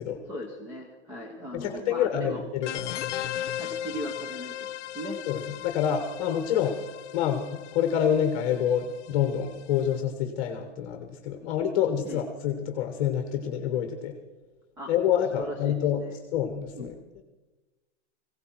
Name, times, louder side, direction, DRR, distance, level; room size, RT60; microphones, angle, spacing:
voice 1, 0.3-2.4 3.6-5.2 12.0-12.2 14.8-14.9 15.3-16.1 16.7-16.9, equal, 5° right, 2 dB, 0.5 m, -38 dB
voice 2, 1.5-3.0 5.3-6.8 7.1-14.2 14.9-16.0 16.3-17.2, left 9 dB, 30° left, 6 dB, 1.1 m, -27 dB
sound 1, 2.6-9.9, left 11 dB, 90° left, 0.8 m, -37 dB
19.0 x 16.5 x 4.5 m, 1.2 s
supercardioid pair, 175°, 34 cm